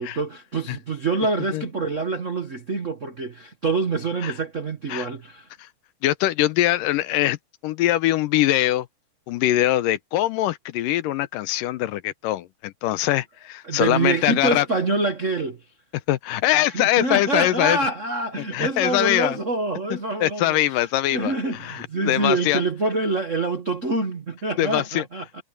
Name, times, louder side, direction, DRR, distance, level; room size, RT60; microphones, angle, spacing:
voice 1, 0.0-5.5 13.6-15.6 16.7-25.4, right 3 dB, 90° right, 0.6 m, -26 dB
voice 2, 6.0-7.4 7.6-8.9 9.3-14.7 16.1-17.8 18.5-19.4 20.2-22.6 24.6-25.1, left 14 dB, 85° left, 2.5 m, -22 dB
omnidirectional pair, 3.8 m